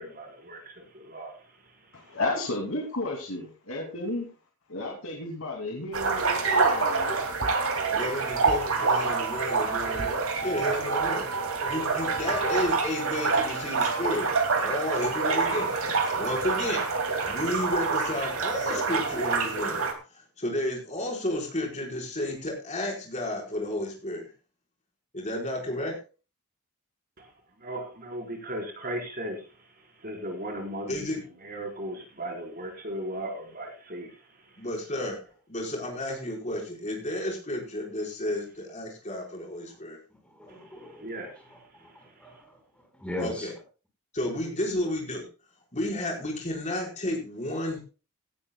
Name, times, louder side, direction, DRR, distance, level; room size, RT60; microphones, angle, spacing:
voice 1, 0.0-2.2 27.6-34.7 40.5-42.4, right 1 dB, 40° right, 0 dB, 4.6 m, -38 dB
voice 2, 1.9-4.3 4.7-7.1, left 2 dB, 65° left, 1 dB, 2.7 m, -32 dB
sound 1, 5.9-19.9, right 4 dB, 70° right, 2.6 m, -27 dB
sound 2, 6.2-17.6, right 5 dB, 90° right, 1.9 m, -36 dB
voice 3, 7.9-11.3 11.6-14.3 14.6-16.9 17.2-19.8 20.4-24.3 25.1-26.0 30.9-31.2 34.6-35.2 35.5-40.0 40.4-40.6 43.2-43.5 44.1-45.2 45.7-47.8, left 1 dB, 30° left, -1 dB, 4.9 m, -32 dB
voice 4, 40.1-41.1 41.5-43.5, left 1 dB, 5° left, 2 dB, 4.9 m, -40 dB
17.5 x 12.5 x 2.3 m, 0.34 s
head